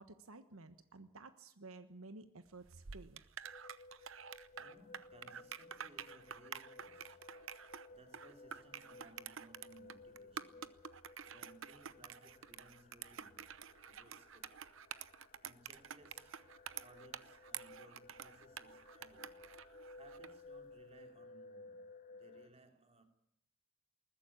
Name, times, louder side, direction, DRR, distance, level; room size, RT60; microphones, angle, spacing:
voice 1, 0.0-3.2, right 3 dB, 85° right, 1.3 m, -54 dB
sound 1, 2.6-20.4, right 8 dB, 65° right, 0.9 m, -49 dB
sound 2, 3.4-22.5, left 2 dB, 40° left, 1.0 m, -58 dB
voice 2, 4.5-14.7 15.4-23.0, right 1 dB, 30° right, 3.0 m, -64 dB
21.0 x 14.5 x 9.8 m
head